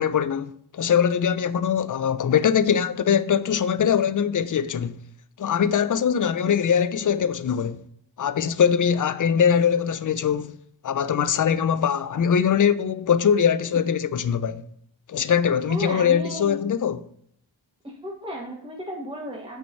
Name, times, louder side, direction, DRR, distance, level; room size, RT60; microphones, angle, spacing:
voice 1, 0.0-5.0 5.4-7.8 8.2-10.5 10.8-14.6 15.1-17.0, left 7 dB, 40° left, 0.5 m, -22 dB
voice 2, 15.6-16.6 18.0-19.6, equal, 10° right, 1.3 m, -34 dB
6.7 x 4.7 x 4.5 m
cardioid pair, 50°, 49 cm